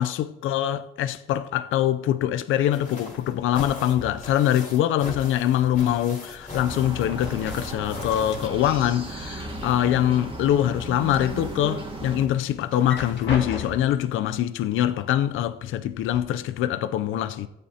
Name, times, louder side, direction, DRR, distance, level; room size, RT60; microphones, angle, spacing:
voice 1, 0.0-17.5, left 11 dB, 80° left, 0.5 m, -24 dB
sound 1, 2.5-9.3 9.5-13.5 14.6-14.7 15.0-15.1, left 2 dB, 40° left, 2.6 m, -42 dB
sound 2, 6.2-7.0 7.3-8.9 9.1-10.1 10.5-11.3 11.8-11.9 12.7-14.1 15.0-15.1 15.5-16.2, left 4 dB, 60° left, 2.1 m, -37 dB
sound 3, 6.6-12.3, right 1 dB, 25° right, 1.8 m, -35 dB
15.0 x 8.7 x 2.8 m
cardioid pair, 90°, 20 cm